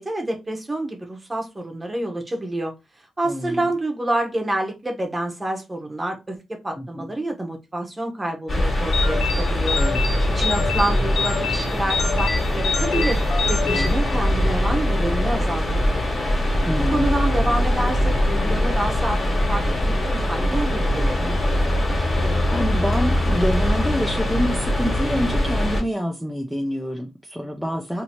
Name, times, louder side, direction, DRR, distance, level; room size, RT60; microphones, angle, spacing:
voice 1, 0.0-2.7 3.2-9.8 10.3-13.2 13.5-16.1 16.9-21.3, right 1 dB, 15° right, 0.9 m, -28 dB
voice 2, 3.2-3.6 6.8-7.1 9.7-10.3 13.7-14.0 16.7-17.1 22.5-28.0, equal, ahead, 0.4 m, -27 dB
sound 1, 8.5-25.8, left 1 dB, 25° left, 1.4 m, -22 dB
sound 2, 8.9-14.7, left 5 dB, 75° left, 0.7 m, -28 dB
2.7 x 2.7 x 4.2 m
wide cardioid pair, 145°, 0 cm